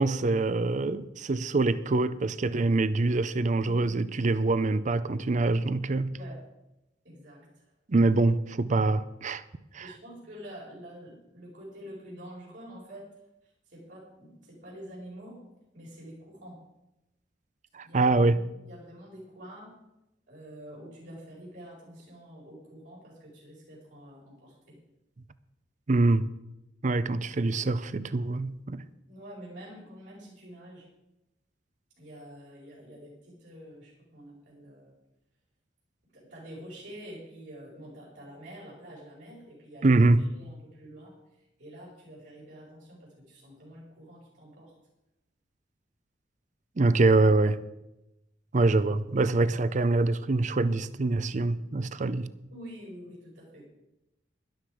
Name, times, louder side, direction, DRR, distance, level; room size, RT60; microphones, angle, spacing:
voice 1, 0.0-6.2 7.9-9.4 9.7-9.8 17.7-18.4 25.9-26.3 26.8-28.8 39.8-40.3 46.8-47.6 48.5-52.3, right 2 dB, 40° right, 0.5 m, -24 dB
voice 2, 3.6-4.0 6.1-6.4 7.0-7.7 9.8-13.1 13.4-15.5 15.7-16.6 17.8-19.8 20.3-24.8 29.1-30.9 32.0-34.9 36.1-44.7 52.5-53.7, equal, 70° right, 5.0 m, -47 dB
12.5 x 11.5 x 5.0 m
head